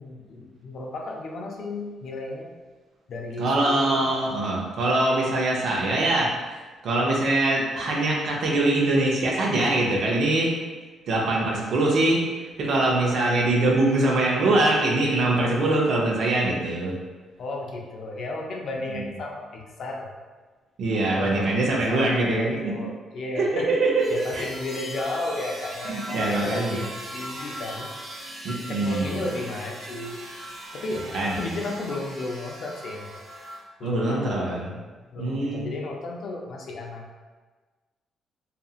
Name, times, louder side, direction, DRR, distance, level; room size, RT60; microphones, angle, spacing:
voice 1, 0.0-2.5 3.1-4.0 11.1-11.4 17.4-20.1 20.9-21.6 21.9-23.7 24.1-26.9 27.1-27.9 28.7-30.2 30.7-33.1 33.8-37.1, left 2 dB, 60° left, 0 dB, 0.4 m, -34 dB
voice 2, 3.4-6.3 6.8-10.5 11.1-12.2 12.6-16.9 18.9-19.0 20.8-22.7 23.3-24.1 24.3-24.5 25.9-26.8 28.4-29.2 31.1-31.5 33.8-34.7 35.2-35.7, right 2 dB, 70° right, -3 dB, 0.5 m, -23 dB
sound 1, 24.0-33.6, right 1 dB, 50° right, 0.8 m, -39 dB
2.8 x 2.5 x 2.3 m, 1.3 s
cardioid pair, 90°, 0 cm